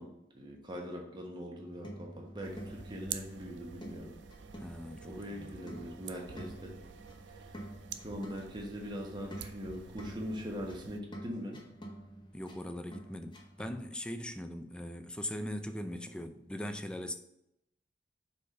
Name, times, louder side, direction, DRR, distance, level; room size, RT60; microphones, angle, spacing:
voice 1, 0.0-4.1 5.0-6.8 7.3-7.6 8.0-11.6, equal, 25° right, 0 dB, 1.1 m, -42 dB
sound 1, 1.6-13.9, right 1 dB, 25° left, 1.0 m, -49 dB
sound 2, 2.4-11.0, right 8 dB, 80° right, 0.5 m, -48 dB
voice 2, 4.6-5.5 12.3-17.1, left 1 dB, 5° left, 8 dB, 0.4 m, -40 dB
4.9 x 4.3 x 5.5 m, 0.82 s
head